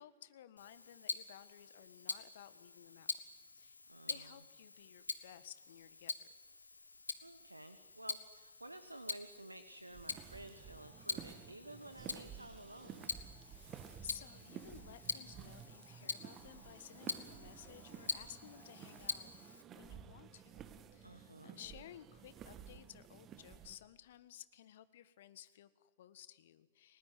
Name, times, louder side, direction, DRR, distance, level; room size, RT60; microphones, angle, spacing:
voice 1, 0.0-3.1 3.6-3.8 4.1-6.3 13.5-19.3 19.7-27.0, left 11 dB, 55° left, 15 dB, 1.5 m, -56 dB
Tick-tock, 0.6-19.6, left 3 dB, 80° left, 1.4 m, -46 dB
voice 2, 3.9-4.4 7.2-13.1 21.0-21.6, right 1 dB, 85° right, 11 dB, 1.2 m, -53 dB
sound 1, 9.8-23.8, right 8 dB, 30° right, 1.8 m, -53 dB
30.0 x 19.5 x 9.5 m, 1.4 s
figure-of-eight pair, 95°, 0 cm